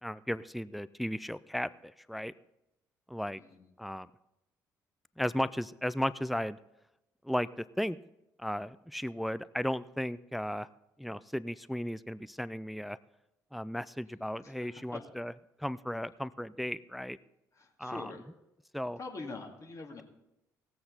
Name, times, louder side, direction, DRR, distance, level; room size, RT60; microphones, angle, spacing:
voice 1, 0.0-2.3 3.1-3.4 3.8-4.1 5.2-6.6 7.2-8.0 8.4-10.7 11.0-13.0 13.5-15.3 15.6-17.2 17.8-18.1 18.7-19.0, equal, ahead, 16 dB, 0.4 m, -35 dB
voice 2, 14.4-15.0 17.5-18.2 19.0-20.0, left 3 dB, 35° left, 1 dB, 2.3 m, -44 dB
18.5 x 7.7 x 4.0 m, 0.90 s
figure-of-eight pair, 45°, 10 cm